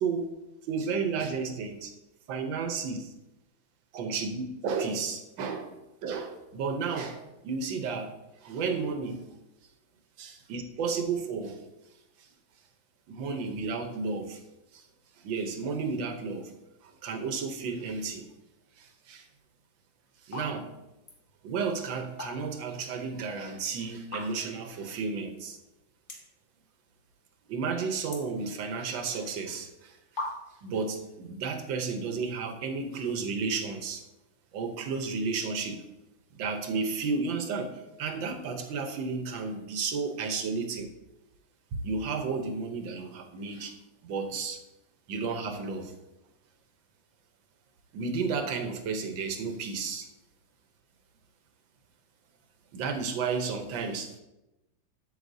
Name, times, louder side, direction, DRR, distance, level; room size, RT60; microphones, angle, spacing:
voice 1, 0.7-1.9 2.3-3.1 3.9-5.7 6.0-8.1 8.4-9.2 10.2-11.6 13.1-14.4 14.7-14.8 15.2-16.5 16.8-18.2 18.8-19.3 20.2-20.7 21.4-25.6 27.5-30.3 30.6-34.0 34.5-35.8 36.3-40.9 41.8-43.7 44.0-44.6 45.1-45.9 47.9-50.1 52.7-54.2, right 5 dB, 80° right, 6 dB, 1.6 m, -32 dB
sound 1, 19.5-19.7 20.2-20.5 20.8-21.2 21.9-22.7 23.0-23.1 24.0-24.6 25.1-25.2 25.4-25.5 26.0-26.4 26.8-27.3 27.6-29.0 29.7-29.8 30.2-30.7, left 2 dB, 40° left, 1.5 m, -39 dB
8.1 x 7.9 x 2.7 m, 0.95 s
omnidirectional pair, 2.1 m